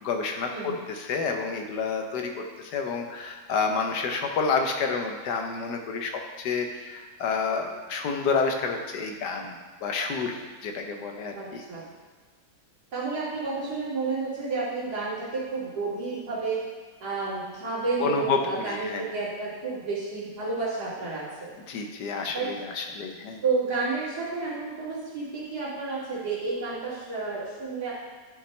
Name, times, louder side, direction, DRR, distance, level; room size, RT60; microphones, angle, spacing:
voice 1, 0.0-9.6 9.8-11.6 18.0-19.1 21.7-23.4, left 5 dB, 80° left, 3 dB, 1.5 m, -29 dB
voice 2, 11.3-11.8 12.9-16.6 17.0-21.5 22.3-22.5 23.4-27.9, right 4 dB, 70° right, -8 dB, 2.9 m, -31 dB
10.5 x 5.8 x 3.2 m, 1.4 s
omnidirectional pair, 1.8 m